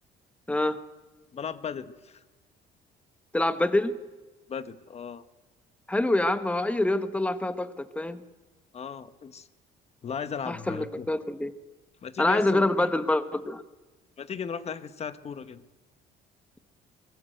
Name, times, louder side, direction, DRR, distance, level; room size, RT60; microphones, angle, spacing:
voice 1, 1.3-2.2 4.5-5.2 8.7-9.5 10.0-11.1 12.0-12.9 14.2-15.6, left 7 dB, 40° left, 12 dB, 1.3 m, -36 dB
voice 2, 3.3-3.9 5.9-8.2 10.5-11.5 12.2-13.6, left 2 dB, 5° left, 12 dB, 1.2 m, -26 dB
23.0 x 20.5 x 7.9 m, 1.2 s
cardioid pair, 110°, 17 cm